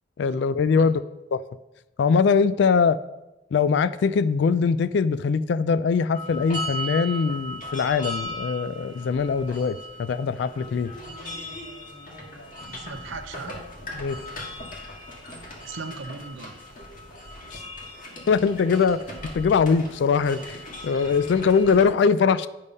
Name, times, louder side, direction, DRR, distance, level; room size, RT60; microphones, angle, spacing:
voice 1, 0.2-1.0 1.3-1.4 2.0-3.0 3.5-10.9 14.0-14.2 17.5-17.6 18.3-19.0 19.3-22.5, left 5 dB, 65° left, 15 dB, 0.3 m, -22 dB
sound 1, 6.1-21.8, left 1 dB, 45° left, 1.7 m, -38 dB
voice 2, 12.7-13.6 15.4-16.6, right 4 dB, 75° right, 6 dB, 0.7 m, -38 dB
9.6 x 5.4 x 5.3 m, 0.99 s
head